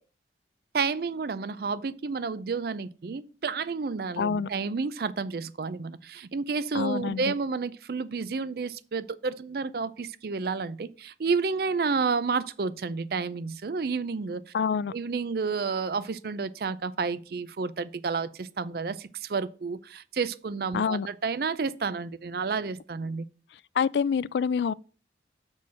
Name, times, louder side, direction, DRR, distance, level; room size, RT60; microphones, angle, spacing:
voice 1, 0.7-14.4 14.9-23.2, right 4 dB, 55° right, 0.5 m, -30 dB
voice 2, 4.2-4.5 6.7-7.3 14.5-14.9 20.7-21.1 23.8-24.7, left 6 dB, 70° left, 0.3 m, -26 dB
6.4 x 5.6 x 6.2 m
head